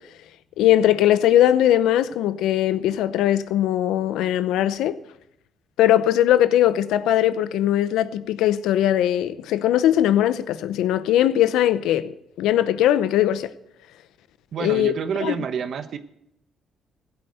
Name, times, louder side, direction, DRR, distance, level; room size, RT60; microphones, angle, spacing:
voice 1, 0.6-5.0 5.8-13.5 14.6-14.9 15.2-15.4, left 12 dB, 90° left, 0.7 m, -20 dB
voice 2, 14.5-16.0, right 7 dB, 65° right, 1.1 m, -28 dB
15.5 x 8.0 x 8.0 m
cardioid pair, 90°, 0 cm